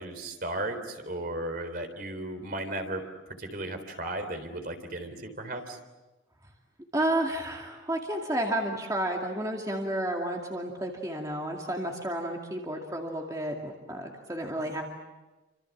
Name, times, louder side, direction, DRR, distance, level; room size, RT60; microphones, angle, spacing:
voice 1, 0.0-5.8, right 1 dB, 45° right, 7 dB, 3.7 m, -35 dB
voice 2, 6.9-14.8, right 1 dB, 20° right, 0 dB, 2.4 m, -31 dB
29.5 x 26.5 x 7.4 m, 1.1 s
head